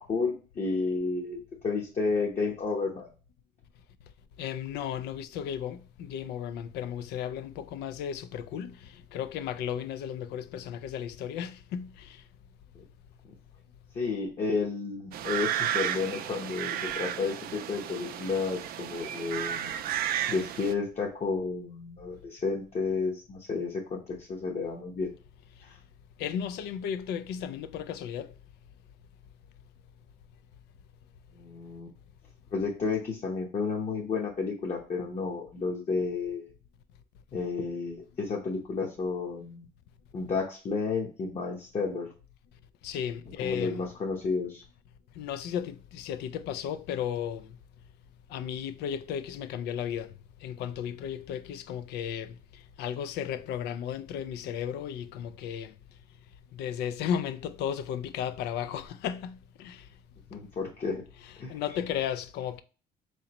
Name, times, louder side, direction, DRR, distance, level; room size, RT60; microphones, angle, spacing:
voice 1, 0.0-3.1 13.9-19.7 20.3-25.1 25.6-25.7 31.3-31.9 32.5-36.5 37.3-39.6 40.1-42.1 43.4-44.6 60.3-61.0 61.4-61.6, left 4 dB, 40° left, 0.9 m, -31 dB
voice 2, 4.4-12.2 26.2-28.3 42.8-43.9 45.2-47.6 48.3-50.1 50.4-52.4 52.8-55.7 56.5-59.8 61.2-62.6, left 9 dB, 80° left, 0.4 m, -34 dB
sound 1, 15.1-20.7, right 10 dB, 60° right, 0.4 m, -33 dB
3.8 x 3.2 x 2.9 m
cardioid pair, 110°, 17 cm